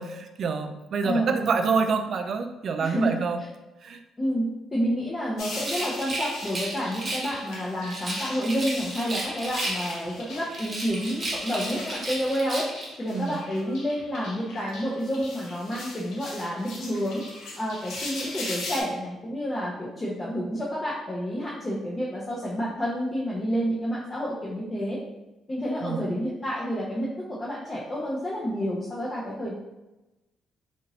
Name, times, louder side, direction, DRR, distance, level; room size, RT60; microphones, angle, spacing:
voice 1, 0.0-3.4 3.8-4.0 13.1-13.4 25.8-26.0, right 5 dB, 55° right, 8 dB, 0.3 m, -27 dB
voice 2, 1.0-1.3 2.8-3.2 4.2-4.5 4.7-12.7 13.0-17.2 17.6-25.0 25.5-29.5, equal, 25° left, -7 dB, 0.6 m, -29 dB
sound 1, 5.4-18.8, left 2 dB, 80° left, 0.7 m, -40 dB
Rattle, 5.5-7.4 7.9-10.1 10.5-12.9, right 1 dB, 30° right, 0.9 m, -33 dB
2.9 x 2.5 x 2.7 m, 1.0 s
cardioid pair, 90°, 0 cm